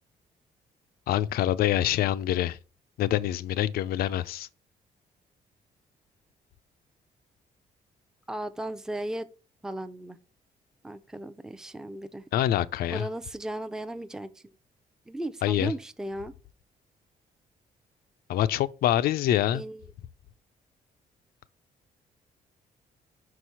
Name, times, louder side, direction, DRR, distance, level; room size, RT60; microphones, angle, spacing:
voice 1, 1.1-2.6 3.0-4.5 12.3-13.1 15.4-15.7 18.3-19.6, left 12 dB, 90° left, 0.5 m, -25 dB
voice 2, 8.3-9.3 9.6-10.2 10.8-12.2 12.9-14.3 15.1-16.3 19.5-19.9, right 1 dB, 5° right, 0.4 m, -36 dB
6.1 x 4.8 x 5.7 m
cardioid pair, 150°, 15 cm